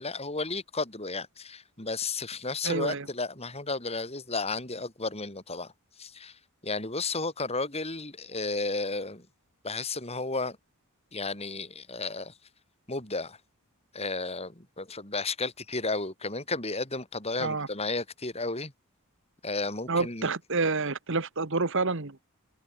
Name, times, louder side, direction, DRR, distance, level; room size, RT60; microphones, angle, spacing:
voice 1, 0.0-5.7 6.0-6.3 6.6-9.2 9.6-10.6 11.1-12.3 12.9-13.4 13.9-18.7 19.4-20.3, left 3 dB, 30° left, 6.0 m, -33 dB
voice 2, 2.6-3.1 17.4-17.7 19.9-22.2, right 3 dB, 60° right, 1.5 m, -28 dB
head